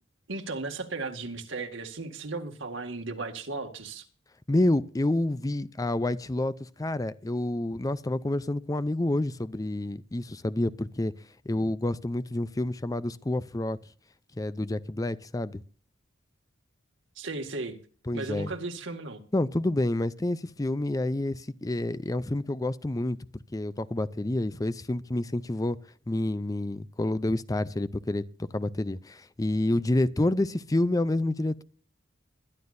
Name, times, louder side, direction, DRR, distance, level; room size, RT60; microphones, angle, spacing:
voice 1, 0.3-4.1 17.2-17.8 18.1-19.2, right 3 dB, 80° right, 2.0 m, -35 dB
voice 2, 4.5-11.1 11.5-13.8 14.4-15.6 18.1-18.5 19.3-23.2 23.5-25.8 26.1-31.6, left 1 dB, 20° left, 0.5 m, -28 dB
21.5 x 11.5 x 2.6 m
head